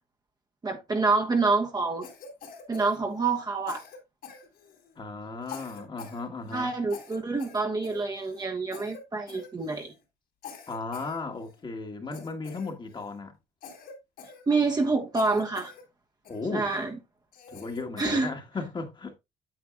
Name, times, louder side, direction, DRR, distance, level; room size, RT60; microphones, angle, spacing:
voice 1, 0.6-2.1 2.7-3.8 6.5-9.9 14.5-15.7 16.5-17.0 18.0-18.3, right 3 dB, 25° right, 1.2 m, -27 dB
Cough, 2.0-3.4 3.7-4.9 5.4-6.2 6.5-6.6 6.9-8.4 8.7-9.0 9.3-9.9 10.4-11.6 12.1-13.2 13.6-14.8 15.1-15.8 16.2-16.8 17.3-18.2, left 6 dB, 60° left, 3.3 m, -46 dB
voice 2, 5.0-6.8 10.7-13.3 16.3-16.7 17.5-19.2, left 3 dB, 25° left, 1.6 m, -35 dB
9.0 x 7.7 x 2.4 m
cardioid pair, 110°, 17 cm